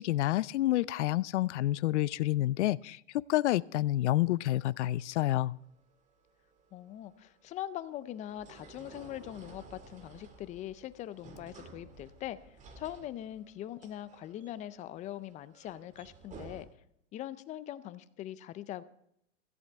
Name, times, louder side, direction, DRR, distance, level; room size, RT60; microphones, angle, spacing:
voice 1, 0.0-3.0 3.3-5.6, left 15 dB, 65° left, 20 dB, 0.6 m, -28 dB
sound 1, 4.1-16.6, right 3 dB, 20° right, 1.9 m, -54 dB
voice 2, 6.7-12.4 12.8-16.7 17.1-18.8, left 12 dB, 20° left, 15 dB, 0.5 m, -42 dB
16.5 x 14.5 x 3.5 m, 0.74 s
hypercardioid pair, 130°, 37 cm